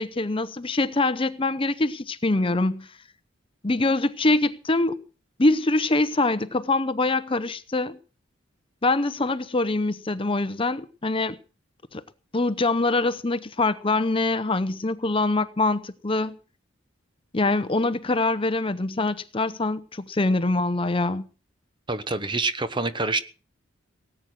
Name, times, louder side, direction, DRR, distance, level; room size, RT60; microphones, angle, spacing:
voice 1, 0.0-2.9 3.6-5.0 5.4-8.0 8.8-11.4 11.9-12.0 12.3-16.4 17.3-21.3, left 2 dB, 25° left, 0.7 m, -24 dB
voice 2, 21.9-23.2, right 3 dB, 25° right, 0.9 m, -26 dB
18.5 x 8.9 x 6.4 m
head